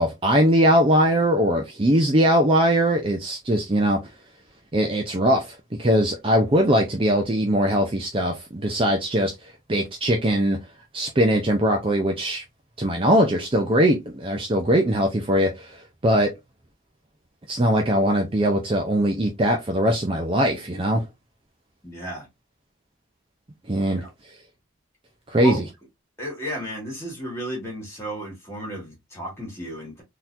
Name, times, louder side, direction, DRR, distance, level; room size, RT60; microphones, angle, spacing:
voice 1, 0.0-4.0 4.7-10.6 10.9-12.4 12.8-16.3 17.5-21.0 23.7-24.0 25.3-25.6, equal, 25° right, 0.5 m, -21 dB
voice 2, 21.8-22.3 23.9-24.1 25.4-25.6 26.2-30.0, equal, 10° left, 1.9 m, -33 dB
3.8 x 2.8 x 2.5 m
head